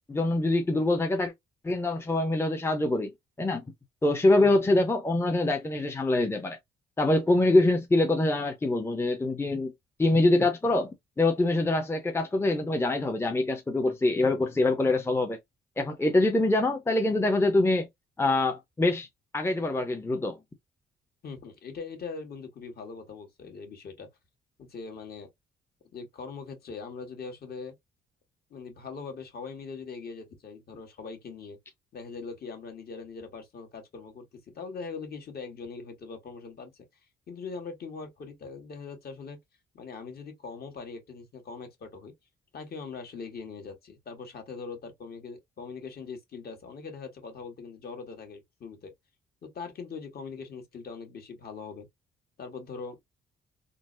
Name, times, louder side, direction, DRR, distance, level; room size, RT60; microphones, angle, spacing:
voice 1, 0.1-1.3 1.6-3.6 4.0-6.6 7.0-9.7 10.0-15.4 15.8-17.9 18.2-19.1 19.3-20.4, left 2 dB, 10° left, 0.6 m, -24 dB
voice 2, 4.4-4.7 21.2-24.1 24.6-25.3 25.9-27.8 28.5-31.6 31.9-36.9 37.3-39.4 39.7-42.1 42.5-48.9 49.4-51.9 52.4-53.0, left 5 dB, 50° left, 1.3 m, -41 dB
3.8 x 2.0 x 2.5 m
cardioid pair, 90°, 20 cm